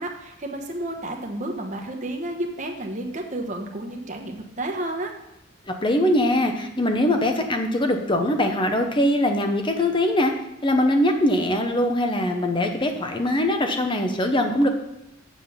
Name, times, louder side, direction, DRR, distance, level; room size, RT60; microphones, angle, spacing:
voice 1, 0.0-5.1, right 1 dB, 35° right, 2 dB, 1.2 m, -31 dB
voice 2, 5.7-10.3 10.6-14.7, left 1 dB, 25° left, 5 dB, 0.9 m, -22 dB
7.4 x 7.3 x 5.7 m, 0.88 s
head